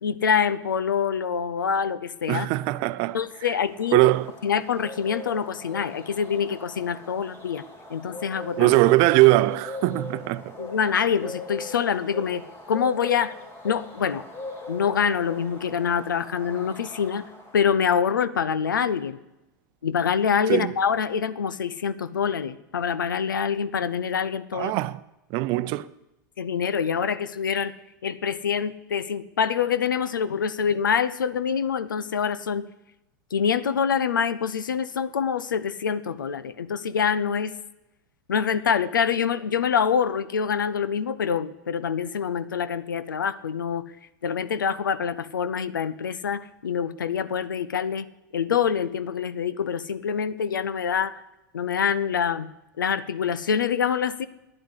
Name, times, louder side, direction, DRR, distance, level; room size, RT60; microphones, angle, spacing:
voice 1, 0.0-2.5 3.1-4.0 4.4-7.6 7.9-8.7 10.6-12.4 12.7-13.4 13.6-14.2 14.7-17.3 17.5-19.2 19.8-24.7 26.4-27.7 28.0-32.7 33.3-37.5 38.3-43.9 44.2-48.1 48.3-51.2 51.5-52.5 52.8-54.3, left 7 dB, 80° left, 0.7 m, -25 dB
voice 2, 2.3-3.2 3.9-4.3 8.6-10.6 20.5-20.7 24.5-25.0 25.3-25.9, right 18 dB, 50° right, 0.6 m, -21 dB
Bird, 3.2-17.9, left 2 dB, 25° left, 2.9 m, -41 dB
11.5 x 10.0 x 8.1 m
hypercardioid pair, 90°, 10 cm